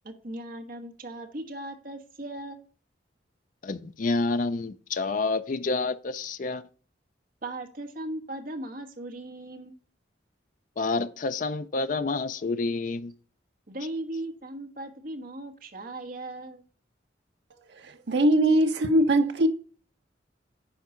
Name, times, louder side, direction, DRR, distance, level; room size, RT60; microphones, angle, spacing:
voice 1, 0.0-2.7 7.4-9.7 13.7-16.6, right 1 dB, 50° right, 1.2 m, -38 dB
voice 2, 3.6-6.6 10.8-13.1, left 3 dB, 45° left, 0.5 m, -28 dB
voice 3, 17.7-19.5, right 1 dB, 70° right, 0.8 m, -21 dB
10.0 x 4.7 x 3.8 m
head